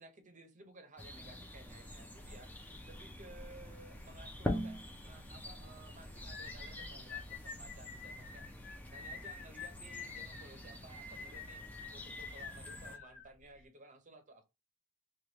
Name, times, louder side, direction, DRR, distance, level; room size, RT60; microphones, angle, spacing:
voice 1, 0.0-8.4 8.9-14.4, right 2 dB, 35° right, 0.6 m, -57 dB
sound 1, 1.0-13.0, left 1 dB, 10° left, 0.4 m, -45 dB
sound 2, 1.6-9.3, equal, 35° left, 1.0 m, -57 dB
sound 3, 6.3-13.7, left 5 dB, 55° left, 0.7 m, -48 dB
3.0 x 2.3 x 3.3 m
head